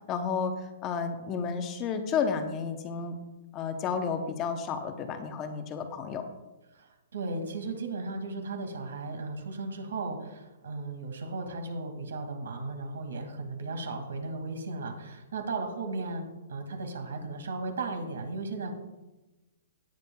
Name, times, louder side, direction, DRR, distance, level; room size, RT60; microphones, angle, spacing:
voice 1, 0.1-3.2 3.5-6.2, left 6 dB, 20° left, 7 dB, 0.8 m, -31 dB
voice 2, 6.7-18.7, right 3 dB, 85° right, 5 dB, 2.2 m, -36 dB
18.0 x 8.2 x 2.3 m, 1.1 s
hypercardioid pair, 165°, 0 cm